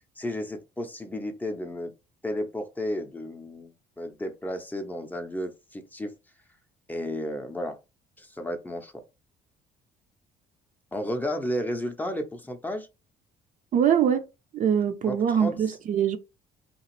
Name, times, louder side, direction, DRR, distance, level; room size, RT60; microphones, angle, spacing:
voice 1, 0.2-1.9 2.2-6.1 6.9-7.8 8.2-8.9 10.9-12.9 15.1-15.6, left 1 dB, 10° left, 0.5 m, -33 dB
voice 2, 13.7-14.3 14.5-16.2, right 8 dB, 50° right, 0.5 m, -23 dB
2.9 x 2.5 x 3.0 m
cardioid pair, 110°, 17 cm